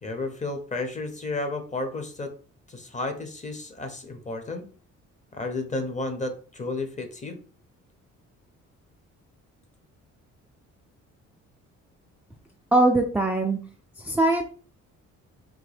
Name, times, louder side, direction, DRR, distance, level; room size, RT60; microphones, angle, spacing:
voice 1, 0.0-2.3 2.7-4.6 5.3-7.4, left 2 dB, 25° left, 6 dB, 0.7 m, -32 dB
voice 2, 12.7-13.6 14.0-14.5, right 2 dB, 5° right, 2 dB, 0.4 m, -21 dB
3.6 x 2.1 x 3.3 m, 0.39 s
cardioid pair, 90°, 30 cm